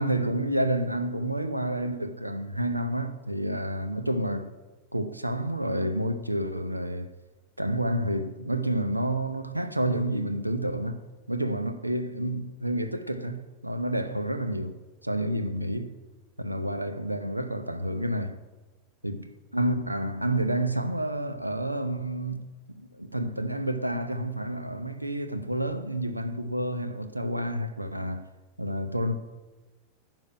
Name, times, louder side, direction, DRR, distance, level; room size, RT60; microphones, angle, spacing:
voice 1, 0.0-4.5 4.9-7.1 7.6-11.0 11.3-14.8 15.0-16.0 16.4-18.4 19.0-28.3 28.6-29.2, right 1 dB, 85° right, 0.8 m, -29 dB
11.5 x 5.9 x 8.8 m
figure-of-eight pair, 90°, 0 cm